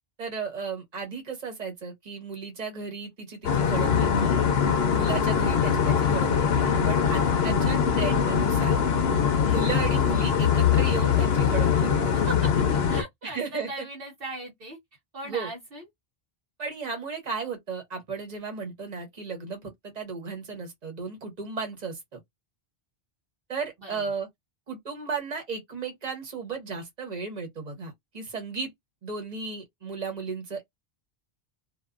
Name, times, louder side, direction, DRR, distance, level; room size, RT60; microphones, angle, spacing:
voice 1, 0.2-4.4 4.9-8.8 9.5-12.1 13.2-13.9 15.2-15.5 16.6-22.2 23.5-24.3 24.7-28.7 29.0-30.6, right 4 dB, 40° right, 1.3 m, -35 dB
sound 1, 3.4-13.0, left 7 dB, 75° left, 0.9 m, -22 dB
voice 2, 12.3-14.8 15.1-15.8 23.8-24.0, right 1 dB, 60° right, 1.1 m, -38 dB
2.6 x 2.6 x 2.4 m
omnidirectional pair, 1.1 m